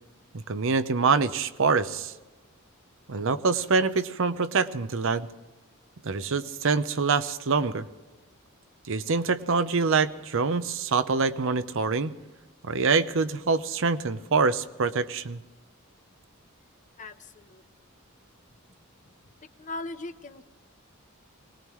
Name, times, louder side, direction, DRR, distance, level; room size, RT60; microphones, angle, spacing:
voice 1, 0.5-2.1 3.1-5.3 6.0-7.9 8.9-12.1 12.7-15.4, right 4 dB, 65° right, 12 dB, 0.7 m, -25 dB
voice 2, 17.0-17.6 19.6-20.5, left 2 dB, 35° left, 9 dB, 0.9 m, -39 dB
23.5 x 19.0 x 3.1 m, 1.2 s
head